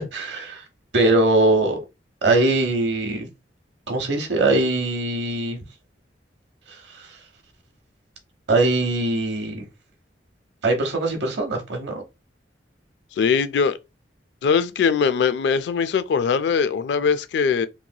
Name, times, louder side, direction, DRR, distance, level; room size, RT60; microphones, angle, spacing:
voice 1, 0.1-0.6 0.9-1.8 2.2-3.3 3.9-5.6 8.5-9.6 10.6-12.0, right 2 dB, 75° right, 0.9 m, -21 dB
voice 2, 13.2-13.8 14.4-17.7, left 6 dB, 70° left, 0.3 m, -21 dB
3.1 x 2.7 x 2.2 m
head